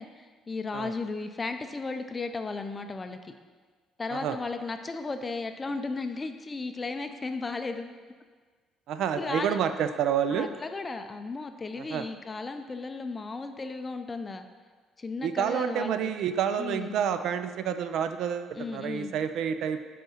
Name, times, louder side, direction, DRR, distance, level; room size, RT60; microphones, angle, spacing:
voice 1, 0.0-3.3 4.0-7.9 9.2-9.6 10.3-14.5 15.0-16.1 16.6-17.0 18.6-19.1, left 3 dB, 20° left, 7 dB, 0.4 m, -35 dB
voice 2, 8.9-10.5 11.8-12.0 15.2-19.8, right 8 dB, 60° right, 10 dB, 0.4 m, -29 dB
8.2 x 4.2 x 5.6 m, 1.5 s
cardioid pair, 155°, 0 cm